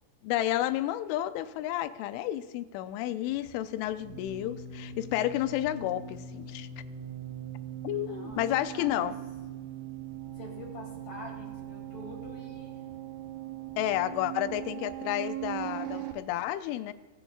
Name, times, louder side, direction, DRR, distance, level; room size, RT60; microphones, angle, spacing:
voice 1, 0.2-6.7 7.8-9.1 13.8-16.9, left 13 dB, 90° left, 12 dB, 3.0 m, -31 dB
sound 1, 3.3-16.1, right 9 dB, 80° right, 2.1 m, -40 dB
voice 2, 8.1-9.1 10.4-12.8 14.3-14.6, left 3 dB, 50° left, 1 dB, 2.4 m, -46 dB
22.0 x 10.5 x 2.4 m, 1.4 s
omnidirectional pair, 5.4 m